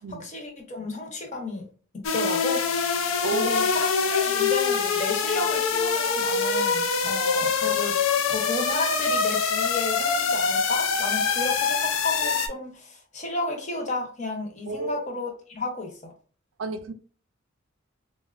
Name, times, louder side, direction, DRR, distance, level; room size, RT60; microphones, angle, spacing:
voice 1, 0.0-1.7 1.9-2.6 3.3-7.9 8.3-16.1, left 2 dB, 35° left, 0.7 m, -32 dB
sound 1, 2.0-12.5, left 5 dB, 80° left, 0.4 m, -24 dB
voice 2, 14.7-15.0 16.6-16.9, right 3 dB, 85° right, 0.4 m, -31 dB
4.0 x 2.1 x 2.4 m
head